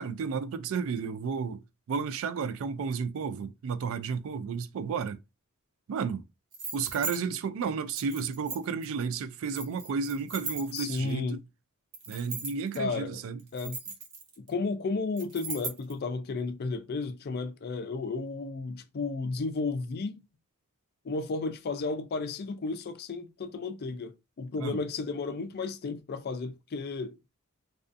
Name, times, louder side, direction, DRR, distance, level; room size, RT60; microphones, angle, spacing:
voice 1, 0.0-1.6 1.9-5.2 5.9-6.2 6.7-11.4 12.1-13.4 24.6-24.8, right 5 dB, 65° right, 0.3 m, -32 dB
sound 1, 6.5-7.2 7.9-8.8 9.5-11.1 11.9-12.8 13.4-14.5 15.2-15.9, right 3 dB, 85° right, 0.9 m, -38 dB
voice 2, 10.7-11.4 12.8-13.2 13.5-13.8 14.4-20.2 21.0-24.1 24.4-27.2, left 3 dB, 45° left, 0.4 m, -33 dB
2.4 x 2.3 x 2.5 m
head